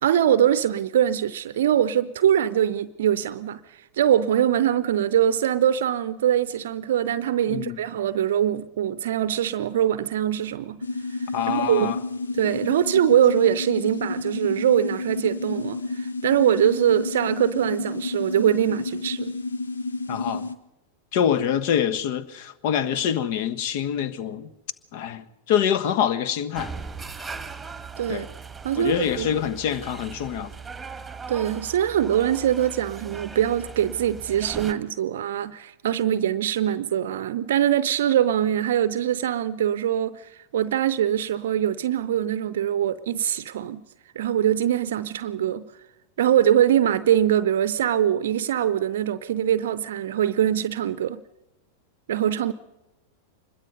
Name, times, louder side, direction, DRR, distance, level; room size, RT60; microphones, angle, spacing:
voice 1, 0.0-10.8 11.1-11.2 11.5-11.9 12.4-19.3 28.0-28.3 28.6-29.4 31.3-43.8 44.2-45.6 46.2-51.2 52.1-52.5, right 10 dB, 60° right, 0.6 m, -23 dB
sound 1, 10.8-20.5, left 3 dB, 75° left, 1.2 m, -31 dB
voice 2, 11.3-12.0 20.1-20.5 21.1-24.5 24.9-26.7 28.1-28.2 28.8-30.5, left 9 dB, 50° left, 1.3 m, -25 dB
sound 2, 26.5-34.7, right 5 dB, 10° right, 1.6 m, -39 dB
25.0 x 21.5 x 5.4 m
figure-of-eight pair, 90°, 0 cm